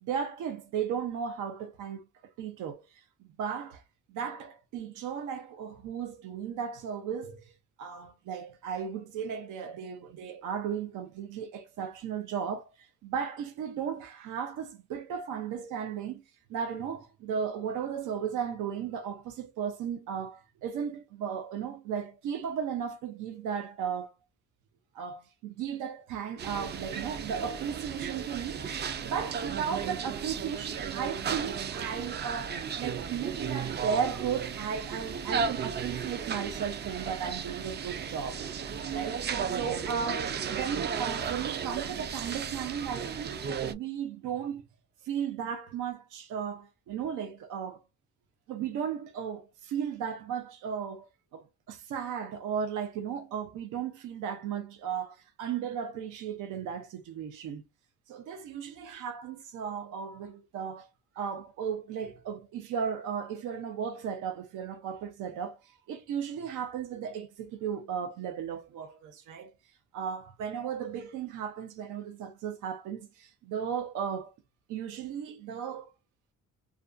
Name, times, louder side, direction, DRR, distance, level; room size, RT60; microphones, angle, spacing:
voice 1, 0.0-3.0 3.4-3.8 4.1-16.2 16.5-24.1 24.9-38.5 38.9-44.7 45.0-47.8 48.5-51.1 51.3-57.6 58.1-60.9 61.1-69.5 69.9-74.3 74.7-75.9, right 7 dB, 85° right, 0.6 m, -35 dB
sound 1, 26.4-43.7, right 7 dB, 35° right, 0.4 m, -35 dB
2.4 x 2.2 x 2.4 m
cardioid pair, 90°, 30 cm